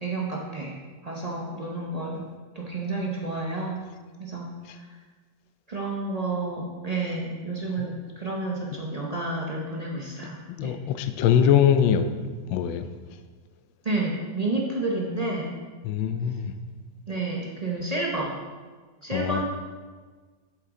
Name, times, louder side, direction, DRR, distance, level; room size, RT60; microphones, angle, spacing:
voice 1, 0.0-0.8 1.0-2.2 2.5-3.8 4.2-4.5 4.7-4.9 5.7-10.7 13.8-15.5 17.1-18.4 19.0-19.4, right 2 dB, 50° right, -2 dB, 0.4 m, -30 dB
voice 2, 10.5-12.0 12.5-12.9 15.8-16.5 19.1-19.4, left 9 dB, 85° left, 8 dB, 1.3 m, -22 dB
8.0 x 7.5 x 3.7 m, 1.5 s
omnidirectional pair, 2.1 m